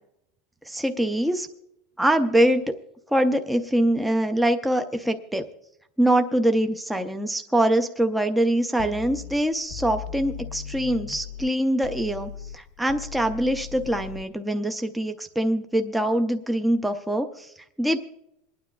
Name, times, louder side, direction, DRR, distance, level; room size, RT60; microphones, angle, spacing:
voice 1, 0.7-1.5 2.0-2.7 3.1-5.4 6.0-18.0, right 1 dB, 5° right, 6 dB, 0.4 m, -24 dB
sound 1, 8.8-11.5 11.8-14.2, left 9 dB, 45° left, 0.6 m, -38 dB
27.5 x 9.6 x 2.3 m, 0.82 s
supercardioid pair, 175°, 0 cm